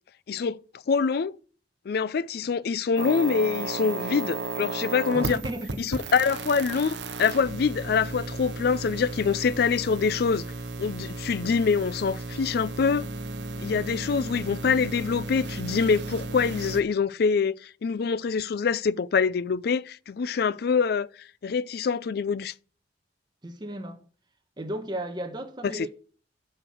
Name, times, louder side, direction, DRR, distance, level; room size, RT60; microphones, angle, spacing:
voice 1, 0.3-0.6 0.9-1.3 1.9-5.4 5.8-10.4 10.8-13.1 13.6-22.5 25.6-25.9, left 5 dB, 60° left, 0.4 m, -25 dB
sound 1, 3.0-16.8, right 2 dB, 80° right, 0.8 m, -34 dB
voice 2, 5.1-6.2 23.4-24.0 24.6-25.9, right 1 dB, 25° right, 1.3 m, -35 dB
7.7 x 6.5 x 6.2 m
head